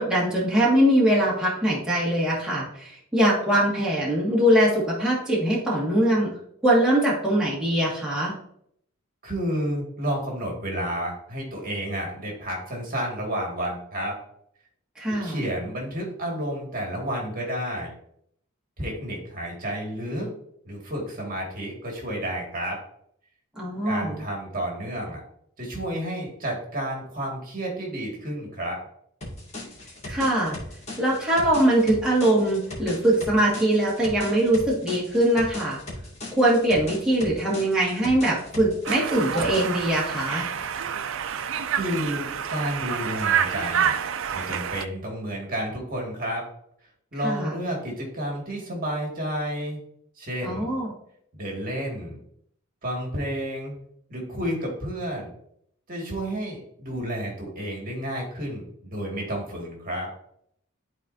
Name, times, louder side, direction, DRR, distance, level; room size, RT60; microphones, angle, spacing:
voice 1, 0.0-6.3 6.6-8.3 15.0-15.4 23.6-24.2 30.1-30.6 31.0-35.8 36.3-40.5 47.2-47.5 50.4-50.9, right 1 dB, 5° right, -6 dB, 1.9 m, -22 dB
voice 2, 9.2-14.2 15.1-17.9 18.8-20.3 20.7-22.8 23.8-25.2 25.6-28.8 41.7-44.0 44.3-46.4 47.1-49.8 50.2-50.7 51.3-52.2 52.8-53.8 54.1-55.3 55.9-60.1, equal, 45° right, -1 dB, 2.0 m, -31 dB
sound 1, 29.2-39.9, left 1 dB, 30° left, 2.2 m, -38 dB
Conversation, 38.8-44.8, right 8 dB, 65° right, 0.5 m, -28 dB
12.0 x 4.2 x 2.7 m, 0.69 s
head